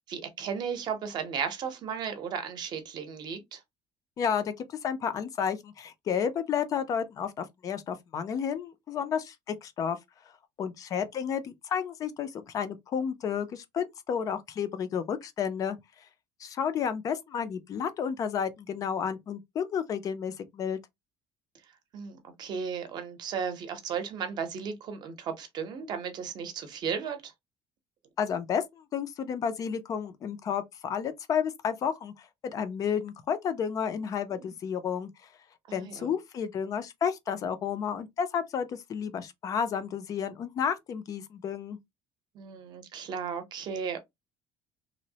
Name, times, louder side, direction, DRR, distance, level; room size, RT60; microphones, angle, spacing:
voice 1, 0.1-3.6 21.9-27.3 34.3-34.5 35.7-36.1 42.3-44.0, right 6 dB, 40° right, 0.7 m, -35 dB
voice 2, 4.2-4.5 4.8-10.0 10.6-15.8 16.4-20.8 28.2-35.1 35.7-41.8, left 7 dB, 30° left, 0.4 m, -31 dB
3.0 x 2.0 x 2.7 m
cardioid pair, 175°, 11 cm